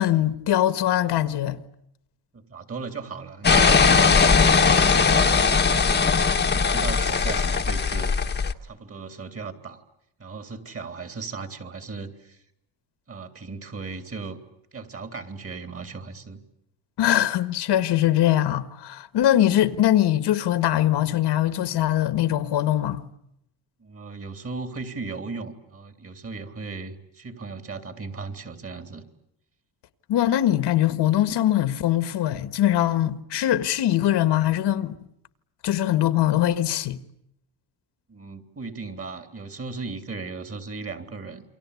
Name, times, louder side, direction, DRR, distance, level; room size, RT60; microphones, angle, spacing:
voice 1, 0.0-1.6 17.0-23.0 30.1-35.0 35.6-37.0, left 12 dB, 65° left, 1.6 m, -22 dB
voice 2, 2.3-4.2 4.6-6.2 6.5-8.1 8.6-9.8 10.2-12.4 13.1-14.4 14.7-16.4 23.8-29.0 38.1-41.4, right 4 dB, 30° right, 3.3 m, -36 dB
sound 1, 3.4-8.5, left 5 dB, 25° left, 1.3 m, -19 dB
29.0 x 24.0 x 8.5 m
cardioid pair, 120°, 44 cm